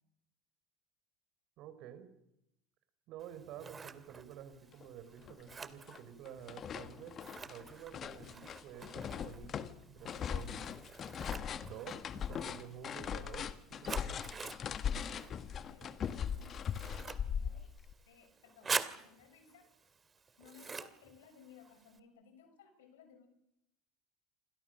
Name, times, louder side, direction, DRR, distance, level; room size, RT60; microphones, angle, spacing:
voice 1, 1.6-2.1 3.1-7.2 7.5-9.7 9.9-10.8 11.6-14.4, right 9 dB, 55° right, 11 dB, 4.5 m, -50 dB
Scissors, 3.2-22.0, right 5 dB, 25° right, 2.3 m, -47 dB
sound 1, 4.8-4.9 5.3-6.0 6.2-17.9, left 8 dB, 40° left, 1.8 m, -40 dB
voice 2, 15.1-17.6 18.0-19.7 20.4-23.3, left 6 dB, 75° left, 8 dB, 6.4 m, -61 dB
28.0 x 26.5 x 6.6 m, 0.83 s
hypercardioid pair, 75°, 0 cm